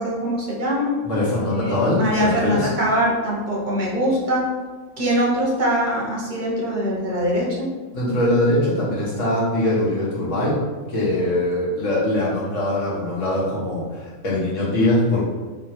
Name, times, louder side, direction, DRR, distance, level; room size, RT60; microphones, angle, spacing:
voice 1, 0.0-0.9 1.6-4.4 5.0-7.7, equal, 40° right, -4 dB, 0.9 m, -22 dB
voice 2, 1.0-2.7 7.9-10.6 10.9-15.2, left 1 dB, 60° left, -7 dB, 1.7 m, -22 dB
3.4 x 3.2 x 4.3 m, 1.3 s
omnidirectional pair, 1.5 m